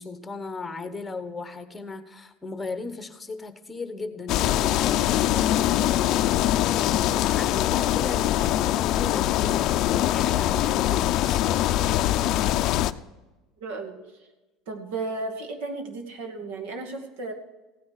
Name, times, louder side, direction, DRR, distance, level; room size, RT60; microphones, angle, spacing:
voice 1, 0.0-11.7, left 3 dB, 10° left, 9 dB, 1.0 m, -37 dB
sound 1, 4.3-12.9, left 13 dB, 50° left, 0.5 m, -23 dB
voice 2, 13.6-14.0 14.7-17.3, right 3 dB, 80° right, 4 dB, 2.3 m, -34 dB
15.5 x 9.6 x 4.8 m, 1.1 s
cardioid pair, 155°, 0 cm